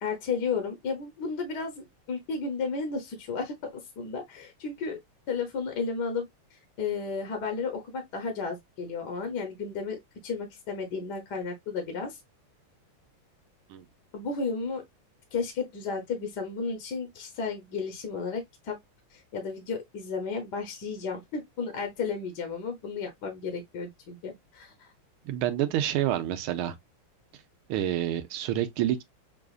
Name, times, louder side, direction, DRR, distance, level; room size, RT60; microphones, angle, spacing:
voice 1, 0.0-5.0 5.3-10.0 10.2-12.2 14.1-14.8 15.3-18.8 19.1-24.9, left 5 dB, 60° left, 1.3 m, -33 dB
voice 2, 25.2-26.7 27.7-29.0, right 12 dB, 75° right, 1.5 m, -28 dB
6.7 x 2.4 x 2.3 m
omnidirectional pair, 2.4 m